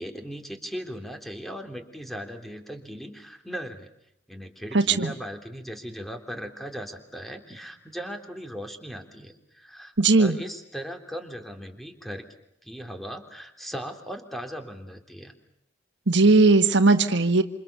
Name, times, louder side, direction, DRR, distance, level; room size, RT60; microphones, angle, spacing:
voice 1, 0.0-3.9 4.3-12.3 12.6-15.3, equal, ahead, 5 dB, 3.4 m, -38 dB
voice 2, 4.7-5.1 10.0-10.4 16.1-17.4, right 3 dB, 65° right, 8 dB, 1.6 m, -18 dB
28.0 x 27.5 x 6.9 m, 0.78 s
head